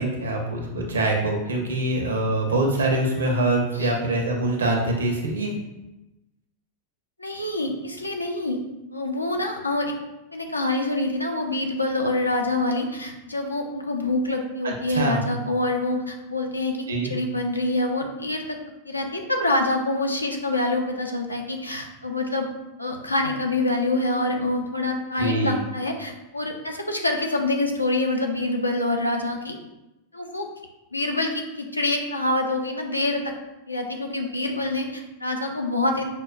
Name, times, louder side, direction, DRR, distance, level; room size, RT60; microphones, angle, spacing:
voice 1, 0.0-5.5 14.6-15.2 16.9-17.1 25.2-25.6, right 2 dB, 70° right, 1 dB, 0.6 m, -24 dB
voice 2, 7.2-8.6 8.9-9.9 10.3-18.6 18.9-22.5 22.8-29.6 30.1-30.5 30.9-33.3 33.7-36.0, left 2 dB, 85° left, 3 dB, 0.4 m, -26 dB
5.2 x 2.1 x 2.3 m, 1.0 s
figure-of-eight pair, 90°, 0 cm